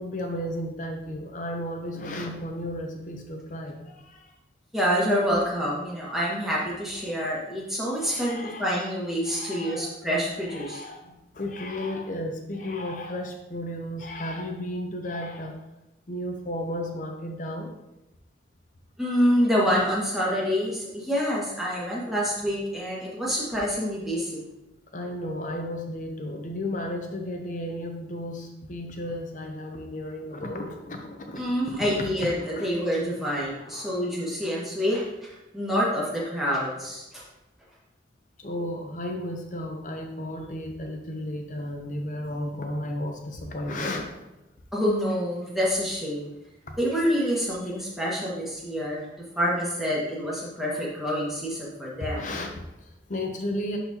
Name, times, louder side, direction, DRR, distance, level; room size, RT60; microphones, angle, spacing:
voice 1, 0.0-4.3 7.0-7.3 8.0-8.7 9.2-9.9 10.5-15.6 16.1-17.7 24.9-31.4 31.7-32.7 33.6-34.0 38.4-44.1 52.0-53.8, left 1 dB, 45° left, 3 dB, 0.7 m, -34 dB
voice 2, 4.7-10.8 19.0-24.5 31.4-37.2 44.7-46.3 46.8-49.1 49.4-52.3, equal, ahead, -6 dB, 1.7 m, -27 dB
11.5 x 4.1 x 2.8 m, 0.96 s
head